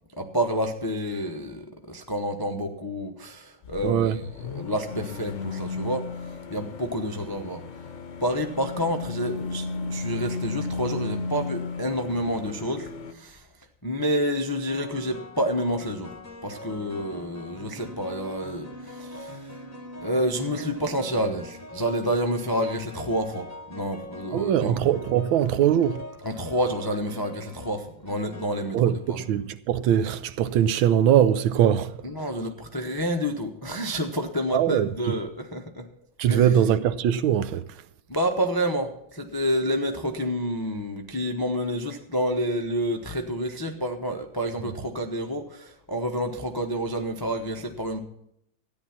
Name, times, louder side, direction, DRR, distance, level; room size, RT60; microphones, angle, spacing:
voice 1, 0.2-6.1 6.5-7.6 8.2-13.5 13.8-16.1 16.4-19.5 20.0-24.8 26.2-29.2 32.0-35.9 36.3-36.4 38.1-48.0, equal, 30° left, 0.4 m, -29 dB
sound 1, 3.6-13.1, left 3 dB, 50° left, 0.9 m, -34 dB
voice 2, 3.8-4.2 24.3-26.1 28.7-32.3 34.5-35.1 36.2-37.8, right 10 dB, 80° right, 1.4 m, -22 dB
sound 2, 13.1-13.4 14.7-29.5, left 1 dB, 10° left, 0.8 m, -43 dB
14.0 x 9.7 x 5.9 m
omnidirectional pair, 2.3 m